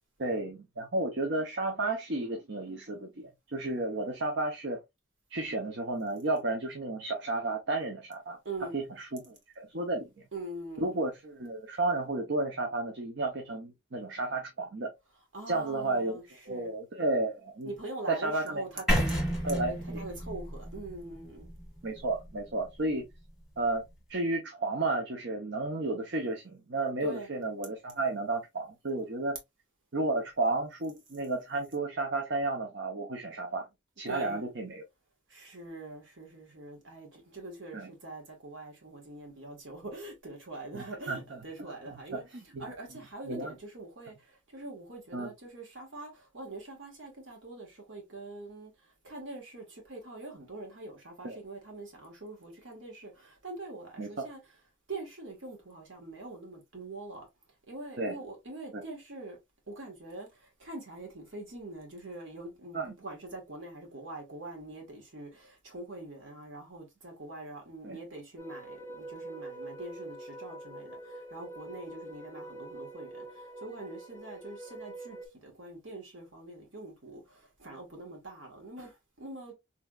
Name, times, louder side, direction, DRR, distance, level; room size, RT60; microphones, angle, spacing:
voice 1, 0.2-4.8 5.3-8.4 8.7-10.1 10.8-14.9 15.5-17.7 18.1-18.6 19.4-20.0 21.8-23.1 23.6-23.8 24.1-29.4 29.9-33.7 34.0-34.8 37.7-37.9 40.7-41.4 41.9-42.7 43.3-43.5 45.1-45.3 51.2-51.4 54.0-54.3 58.0-58.2 58.7-58.8 62.7-62.9 67.8-68.0, right 2 dB, 60° right, 0.7 m, -32 dB
voice 2, 8.4-8.8 10.3-11.0 15.3-16.7 17.6-21.5 27.0-27.3 34.1-34.4 35.3-42.2 42.6-54.4 54.9-57.3 57.7-59.4 59.7-79.5, right 2 dB, 80° right, 1.4 m, -44 dB
sound 1, 18.9-22.9, equal, 5° right, 1.3 m, -32 dB
sound 2, 68.4-75.3, right 2 dB, 15° left, 0.4 m, -45 dB
3.3 x 2.9 x 2.3 m
head